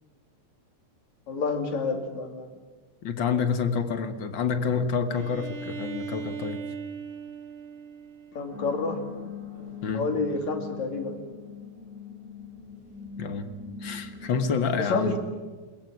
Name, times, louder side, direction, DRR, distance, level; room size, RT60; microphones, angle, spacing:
voice 1, 1.3-2.5 8.3-9.0 9.9-11.2 14.8-15.2, left 3 dB, 75° left, 5 dB, 4.0 m, -29 dB
voice 2, 3.0-6.6 9.8-10.1 13.2-13.5 13.8-15.2, left 5 dB, 50° left, 10 dB, 1.7 m, -28 dB
Bowed string instrument, 5.1-8.9, right 5 dB, 55° right, 3.8 m, -39 dB
sound 1, 8.5-14.5, left 5 dB, 15° left, 7.9 m, -41 dB
22.0 x 21.5 x 9.4 m, 1.3 s
omnidirectional pair, 3.3 m